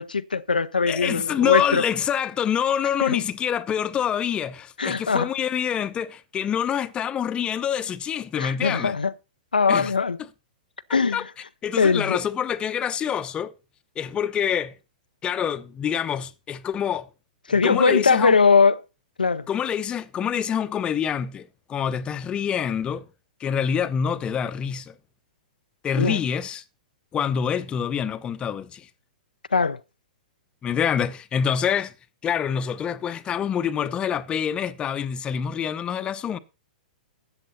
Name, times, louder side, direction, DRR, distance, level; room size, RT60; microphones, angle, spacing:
voice 1, 0.0-1.8 3.0-3.2 4.8-5.3 8.4-9.1 9.5-10.2 10.9-11.3 11.8-12.2 17.5-18.8 19.2-19.5 26.0-26.2 29.5-29.8, left 5 dB, 85° left, 0.6 m, -21 dB
voice 2, 0.9-8.9 9.7-9.9 11.1-11.2 11.6-13.5 14.0-14.7 15.2-17.1 17.6-18.4 19.5-23.0 23.4-24.9 25.8-26.6 27.1-28.9 30.6-31.9 32.2-36.4, left 8 dB, 20° left, 0.9 m, -26 dB
13.5 x 8.9 x 4.1 m
figure-of-eight pair, 110°, 5 cm